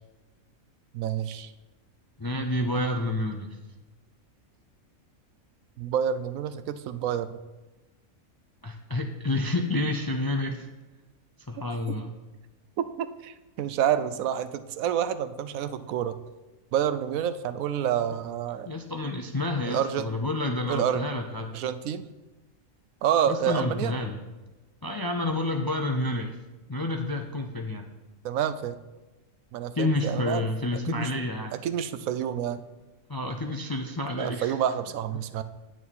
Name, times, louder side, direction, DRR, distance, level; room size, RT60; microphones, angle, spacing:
voice 1, 0.9-1.5 5.8-7.4 11.9-12.0 12.8-16.2 16.7-18.7 19.6-20.1 20.7-21.0 21.5-22.1 23.0-23.9 28.2-28.8 29.5-30.5 30.7-31.1 31.5-32.6 34.2-35.4, right 9 dB, 85° right, 12 dB, 1.0 m, -28 dB
voice 2, 2.2-3.6 8.6-10.7 11.5-12.1 18.7-21.5 23.3-24.2 24.8-26.3 26.7-27.9 29.8-31.5 33.1-34.5, left 2 dB, 35° left, 4 dB, 0.3 m, -29 dB
9.2 x 9.0 x 4.2 m, 1.1 s
omnidirectional pair, 1.4 m